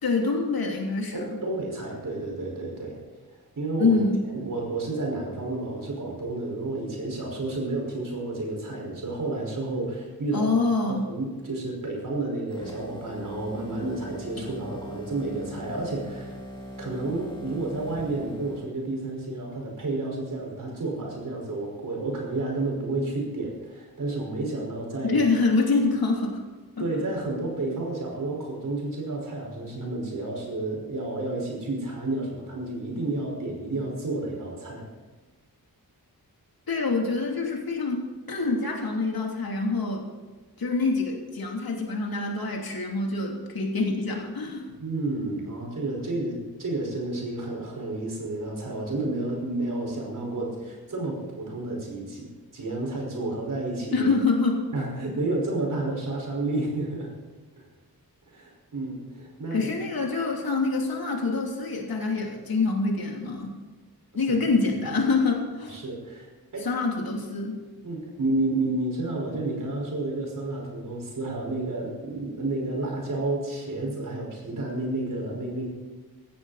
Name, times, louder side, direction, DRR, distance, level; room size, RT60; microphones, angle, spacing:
voice 1, 0.0-1.2 3.8-4.2 10.3-11.1 25.0-26.4 26.8-26.9 36.7-40.1 40.6-44.7 53.9-54.6 59.5-63.5 64.1-65.8 66.6-67.6, left 3 dB, 70° left, 0 dB, 3.3 m, -26 dB
voice 2, 1.1-3.0 3.6-10.5 10.9-16.4 16.8-25.2 26.8-34.9 44.8-54.1 54.7-57.1 57.6-57.7 58.3-59.7 64.1-64.2 65.7-66.7 67.8-75.7, right 2 dB, 55° right, 0 dB, 5.4 m, -31 dB
sound 1, 12.5-18.7, equal, 15° left, 2.3 m, -41 dB
17.5 x 15.0 x 4.3 m, 1.3 s
wide cardioid pair, 165°, 37 cm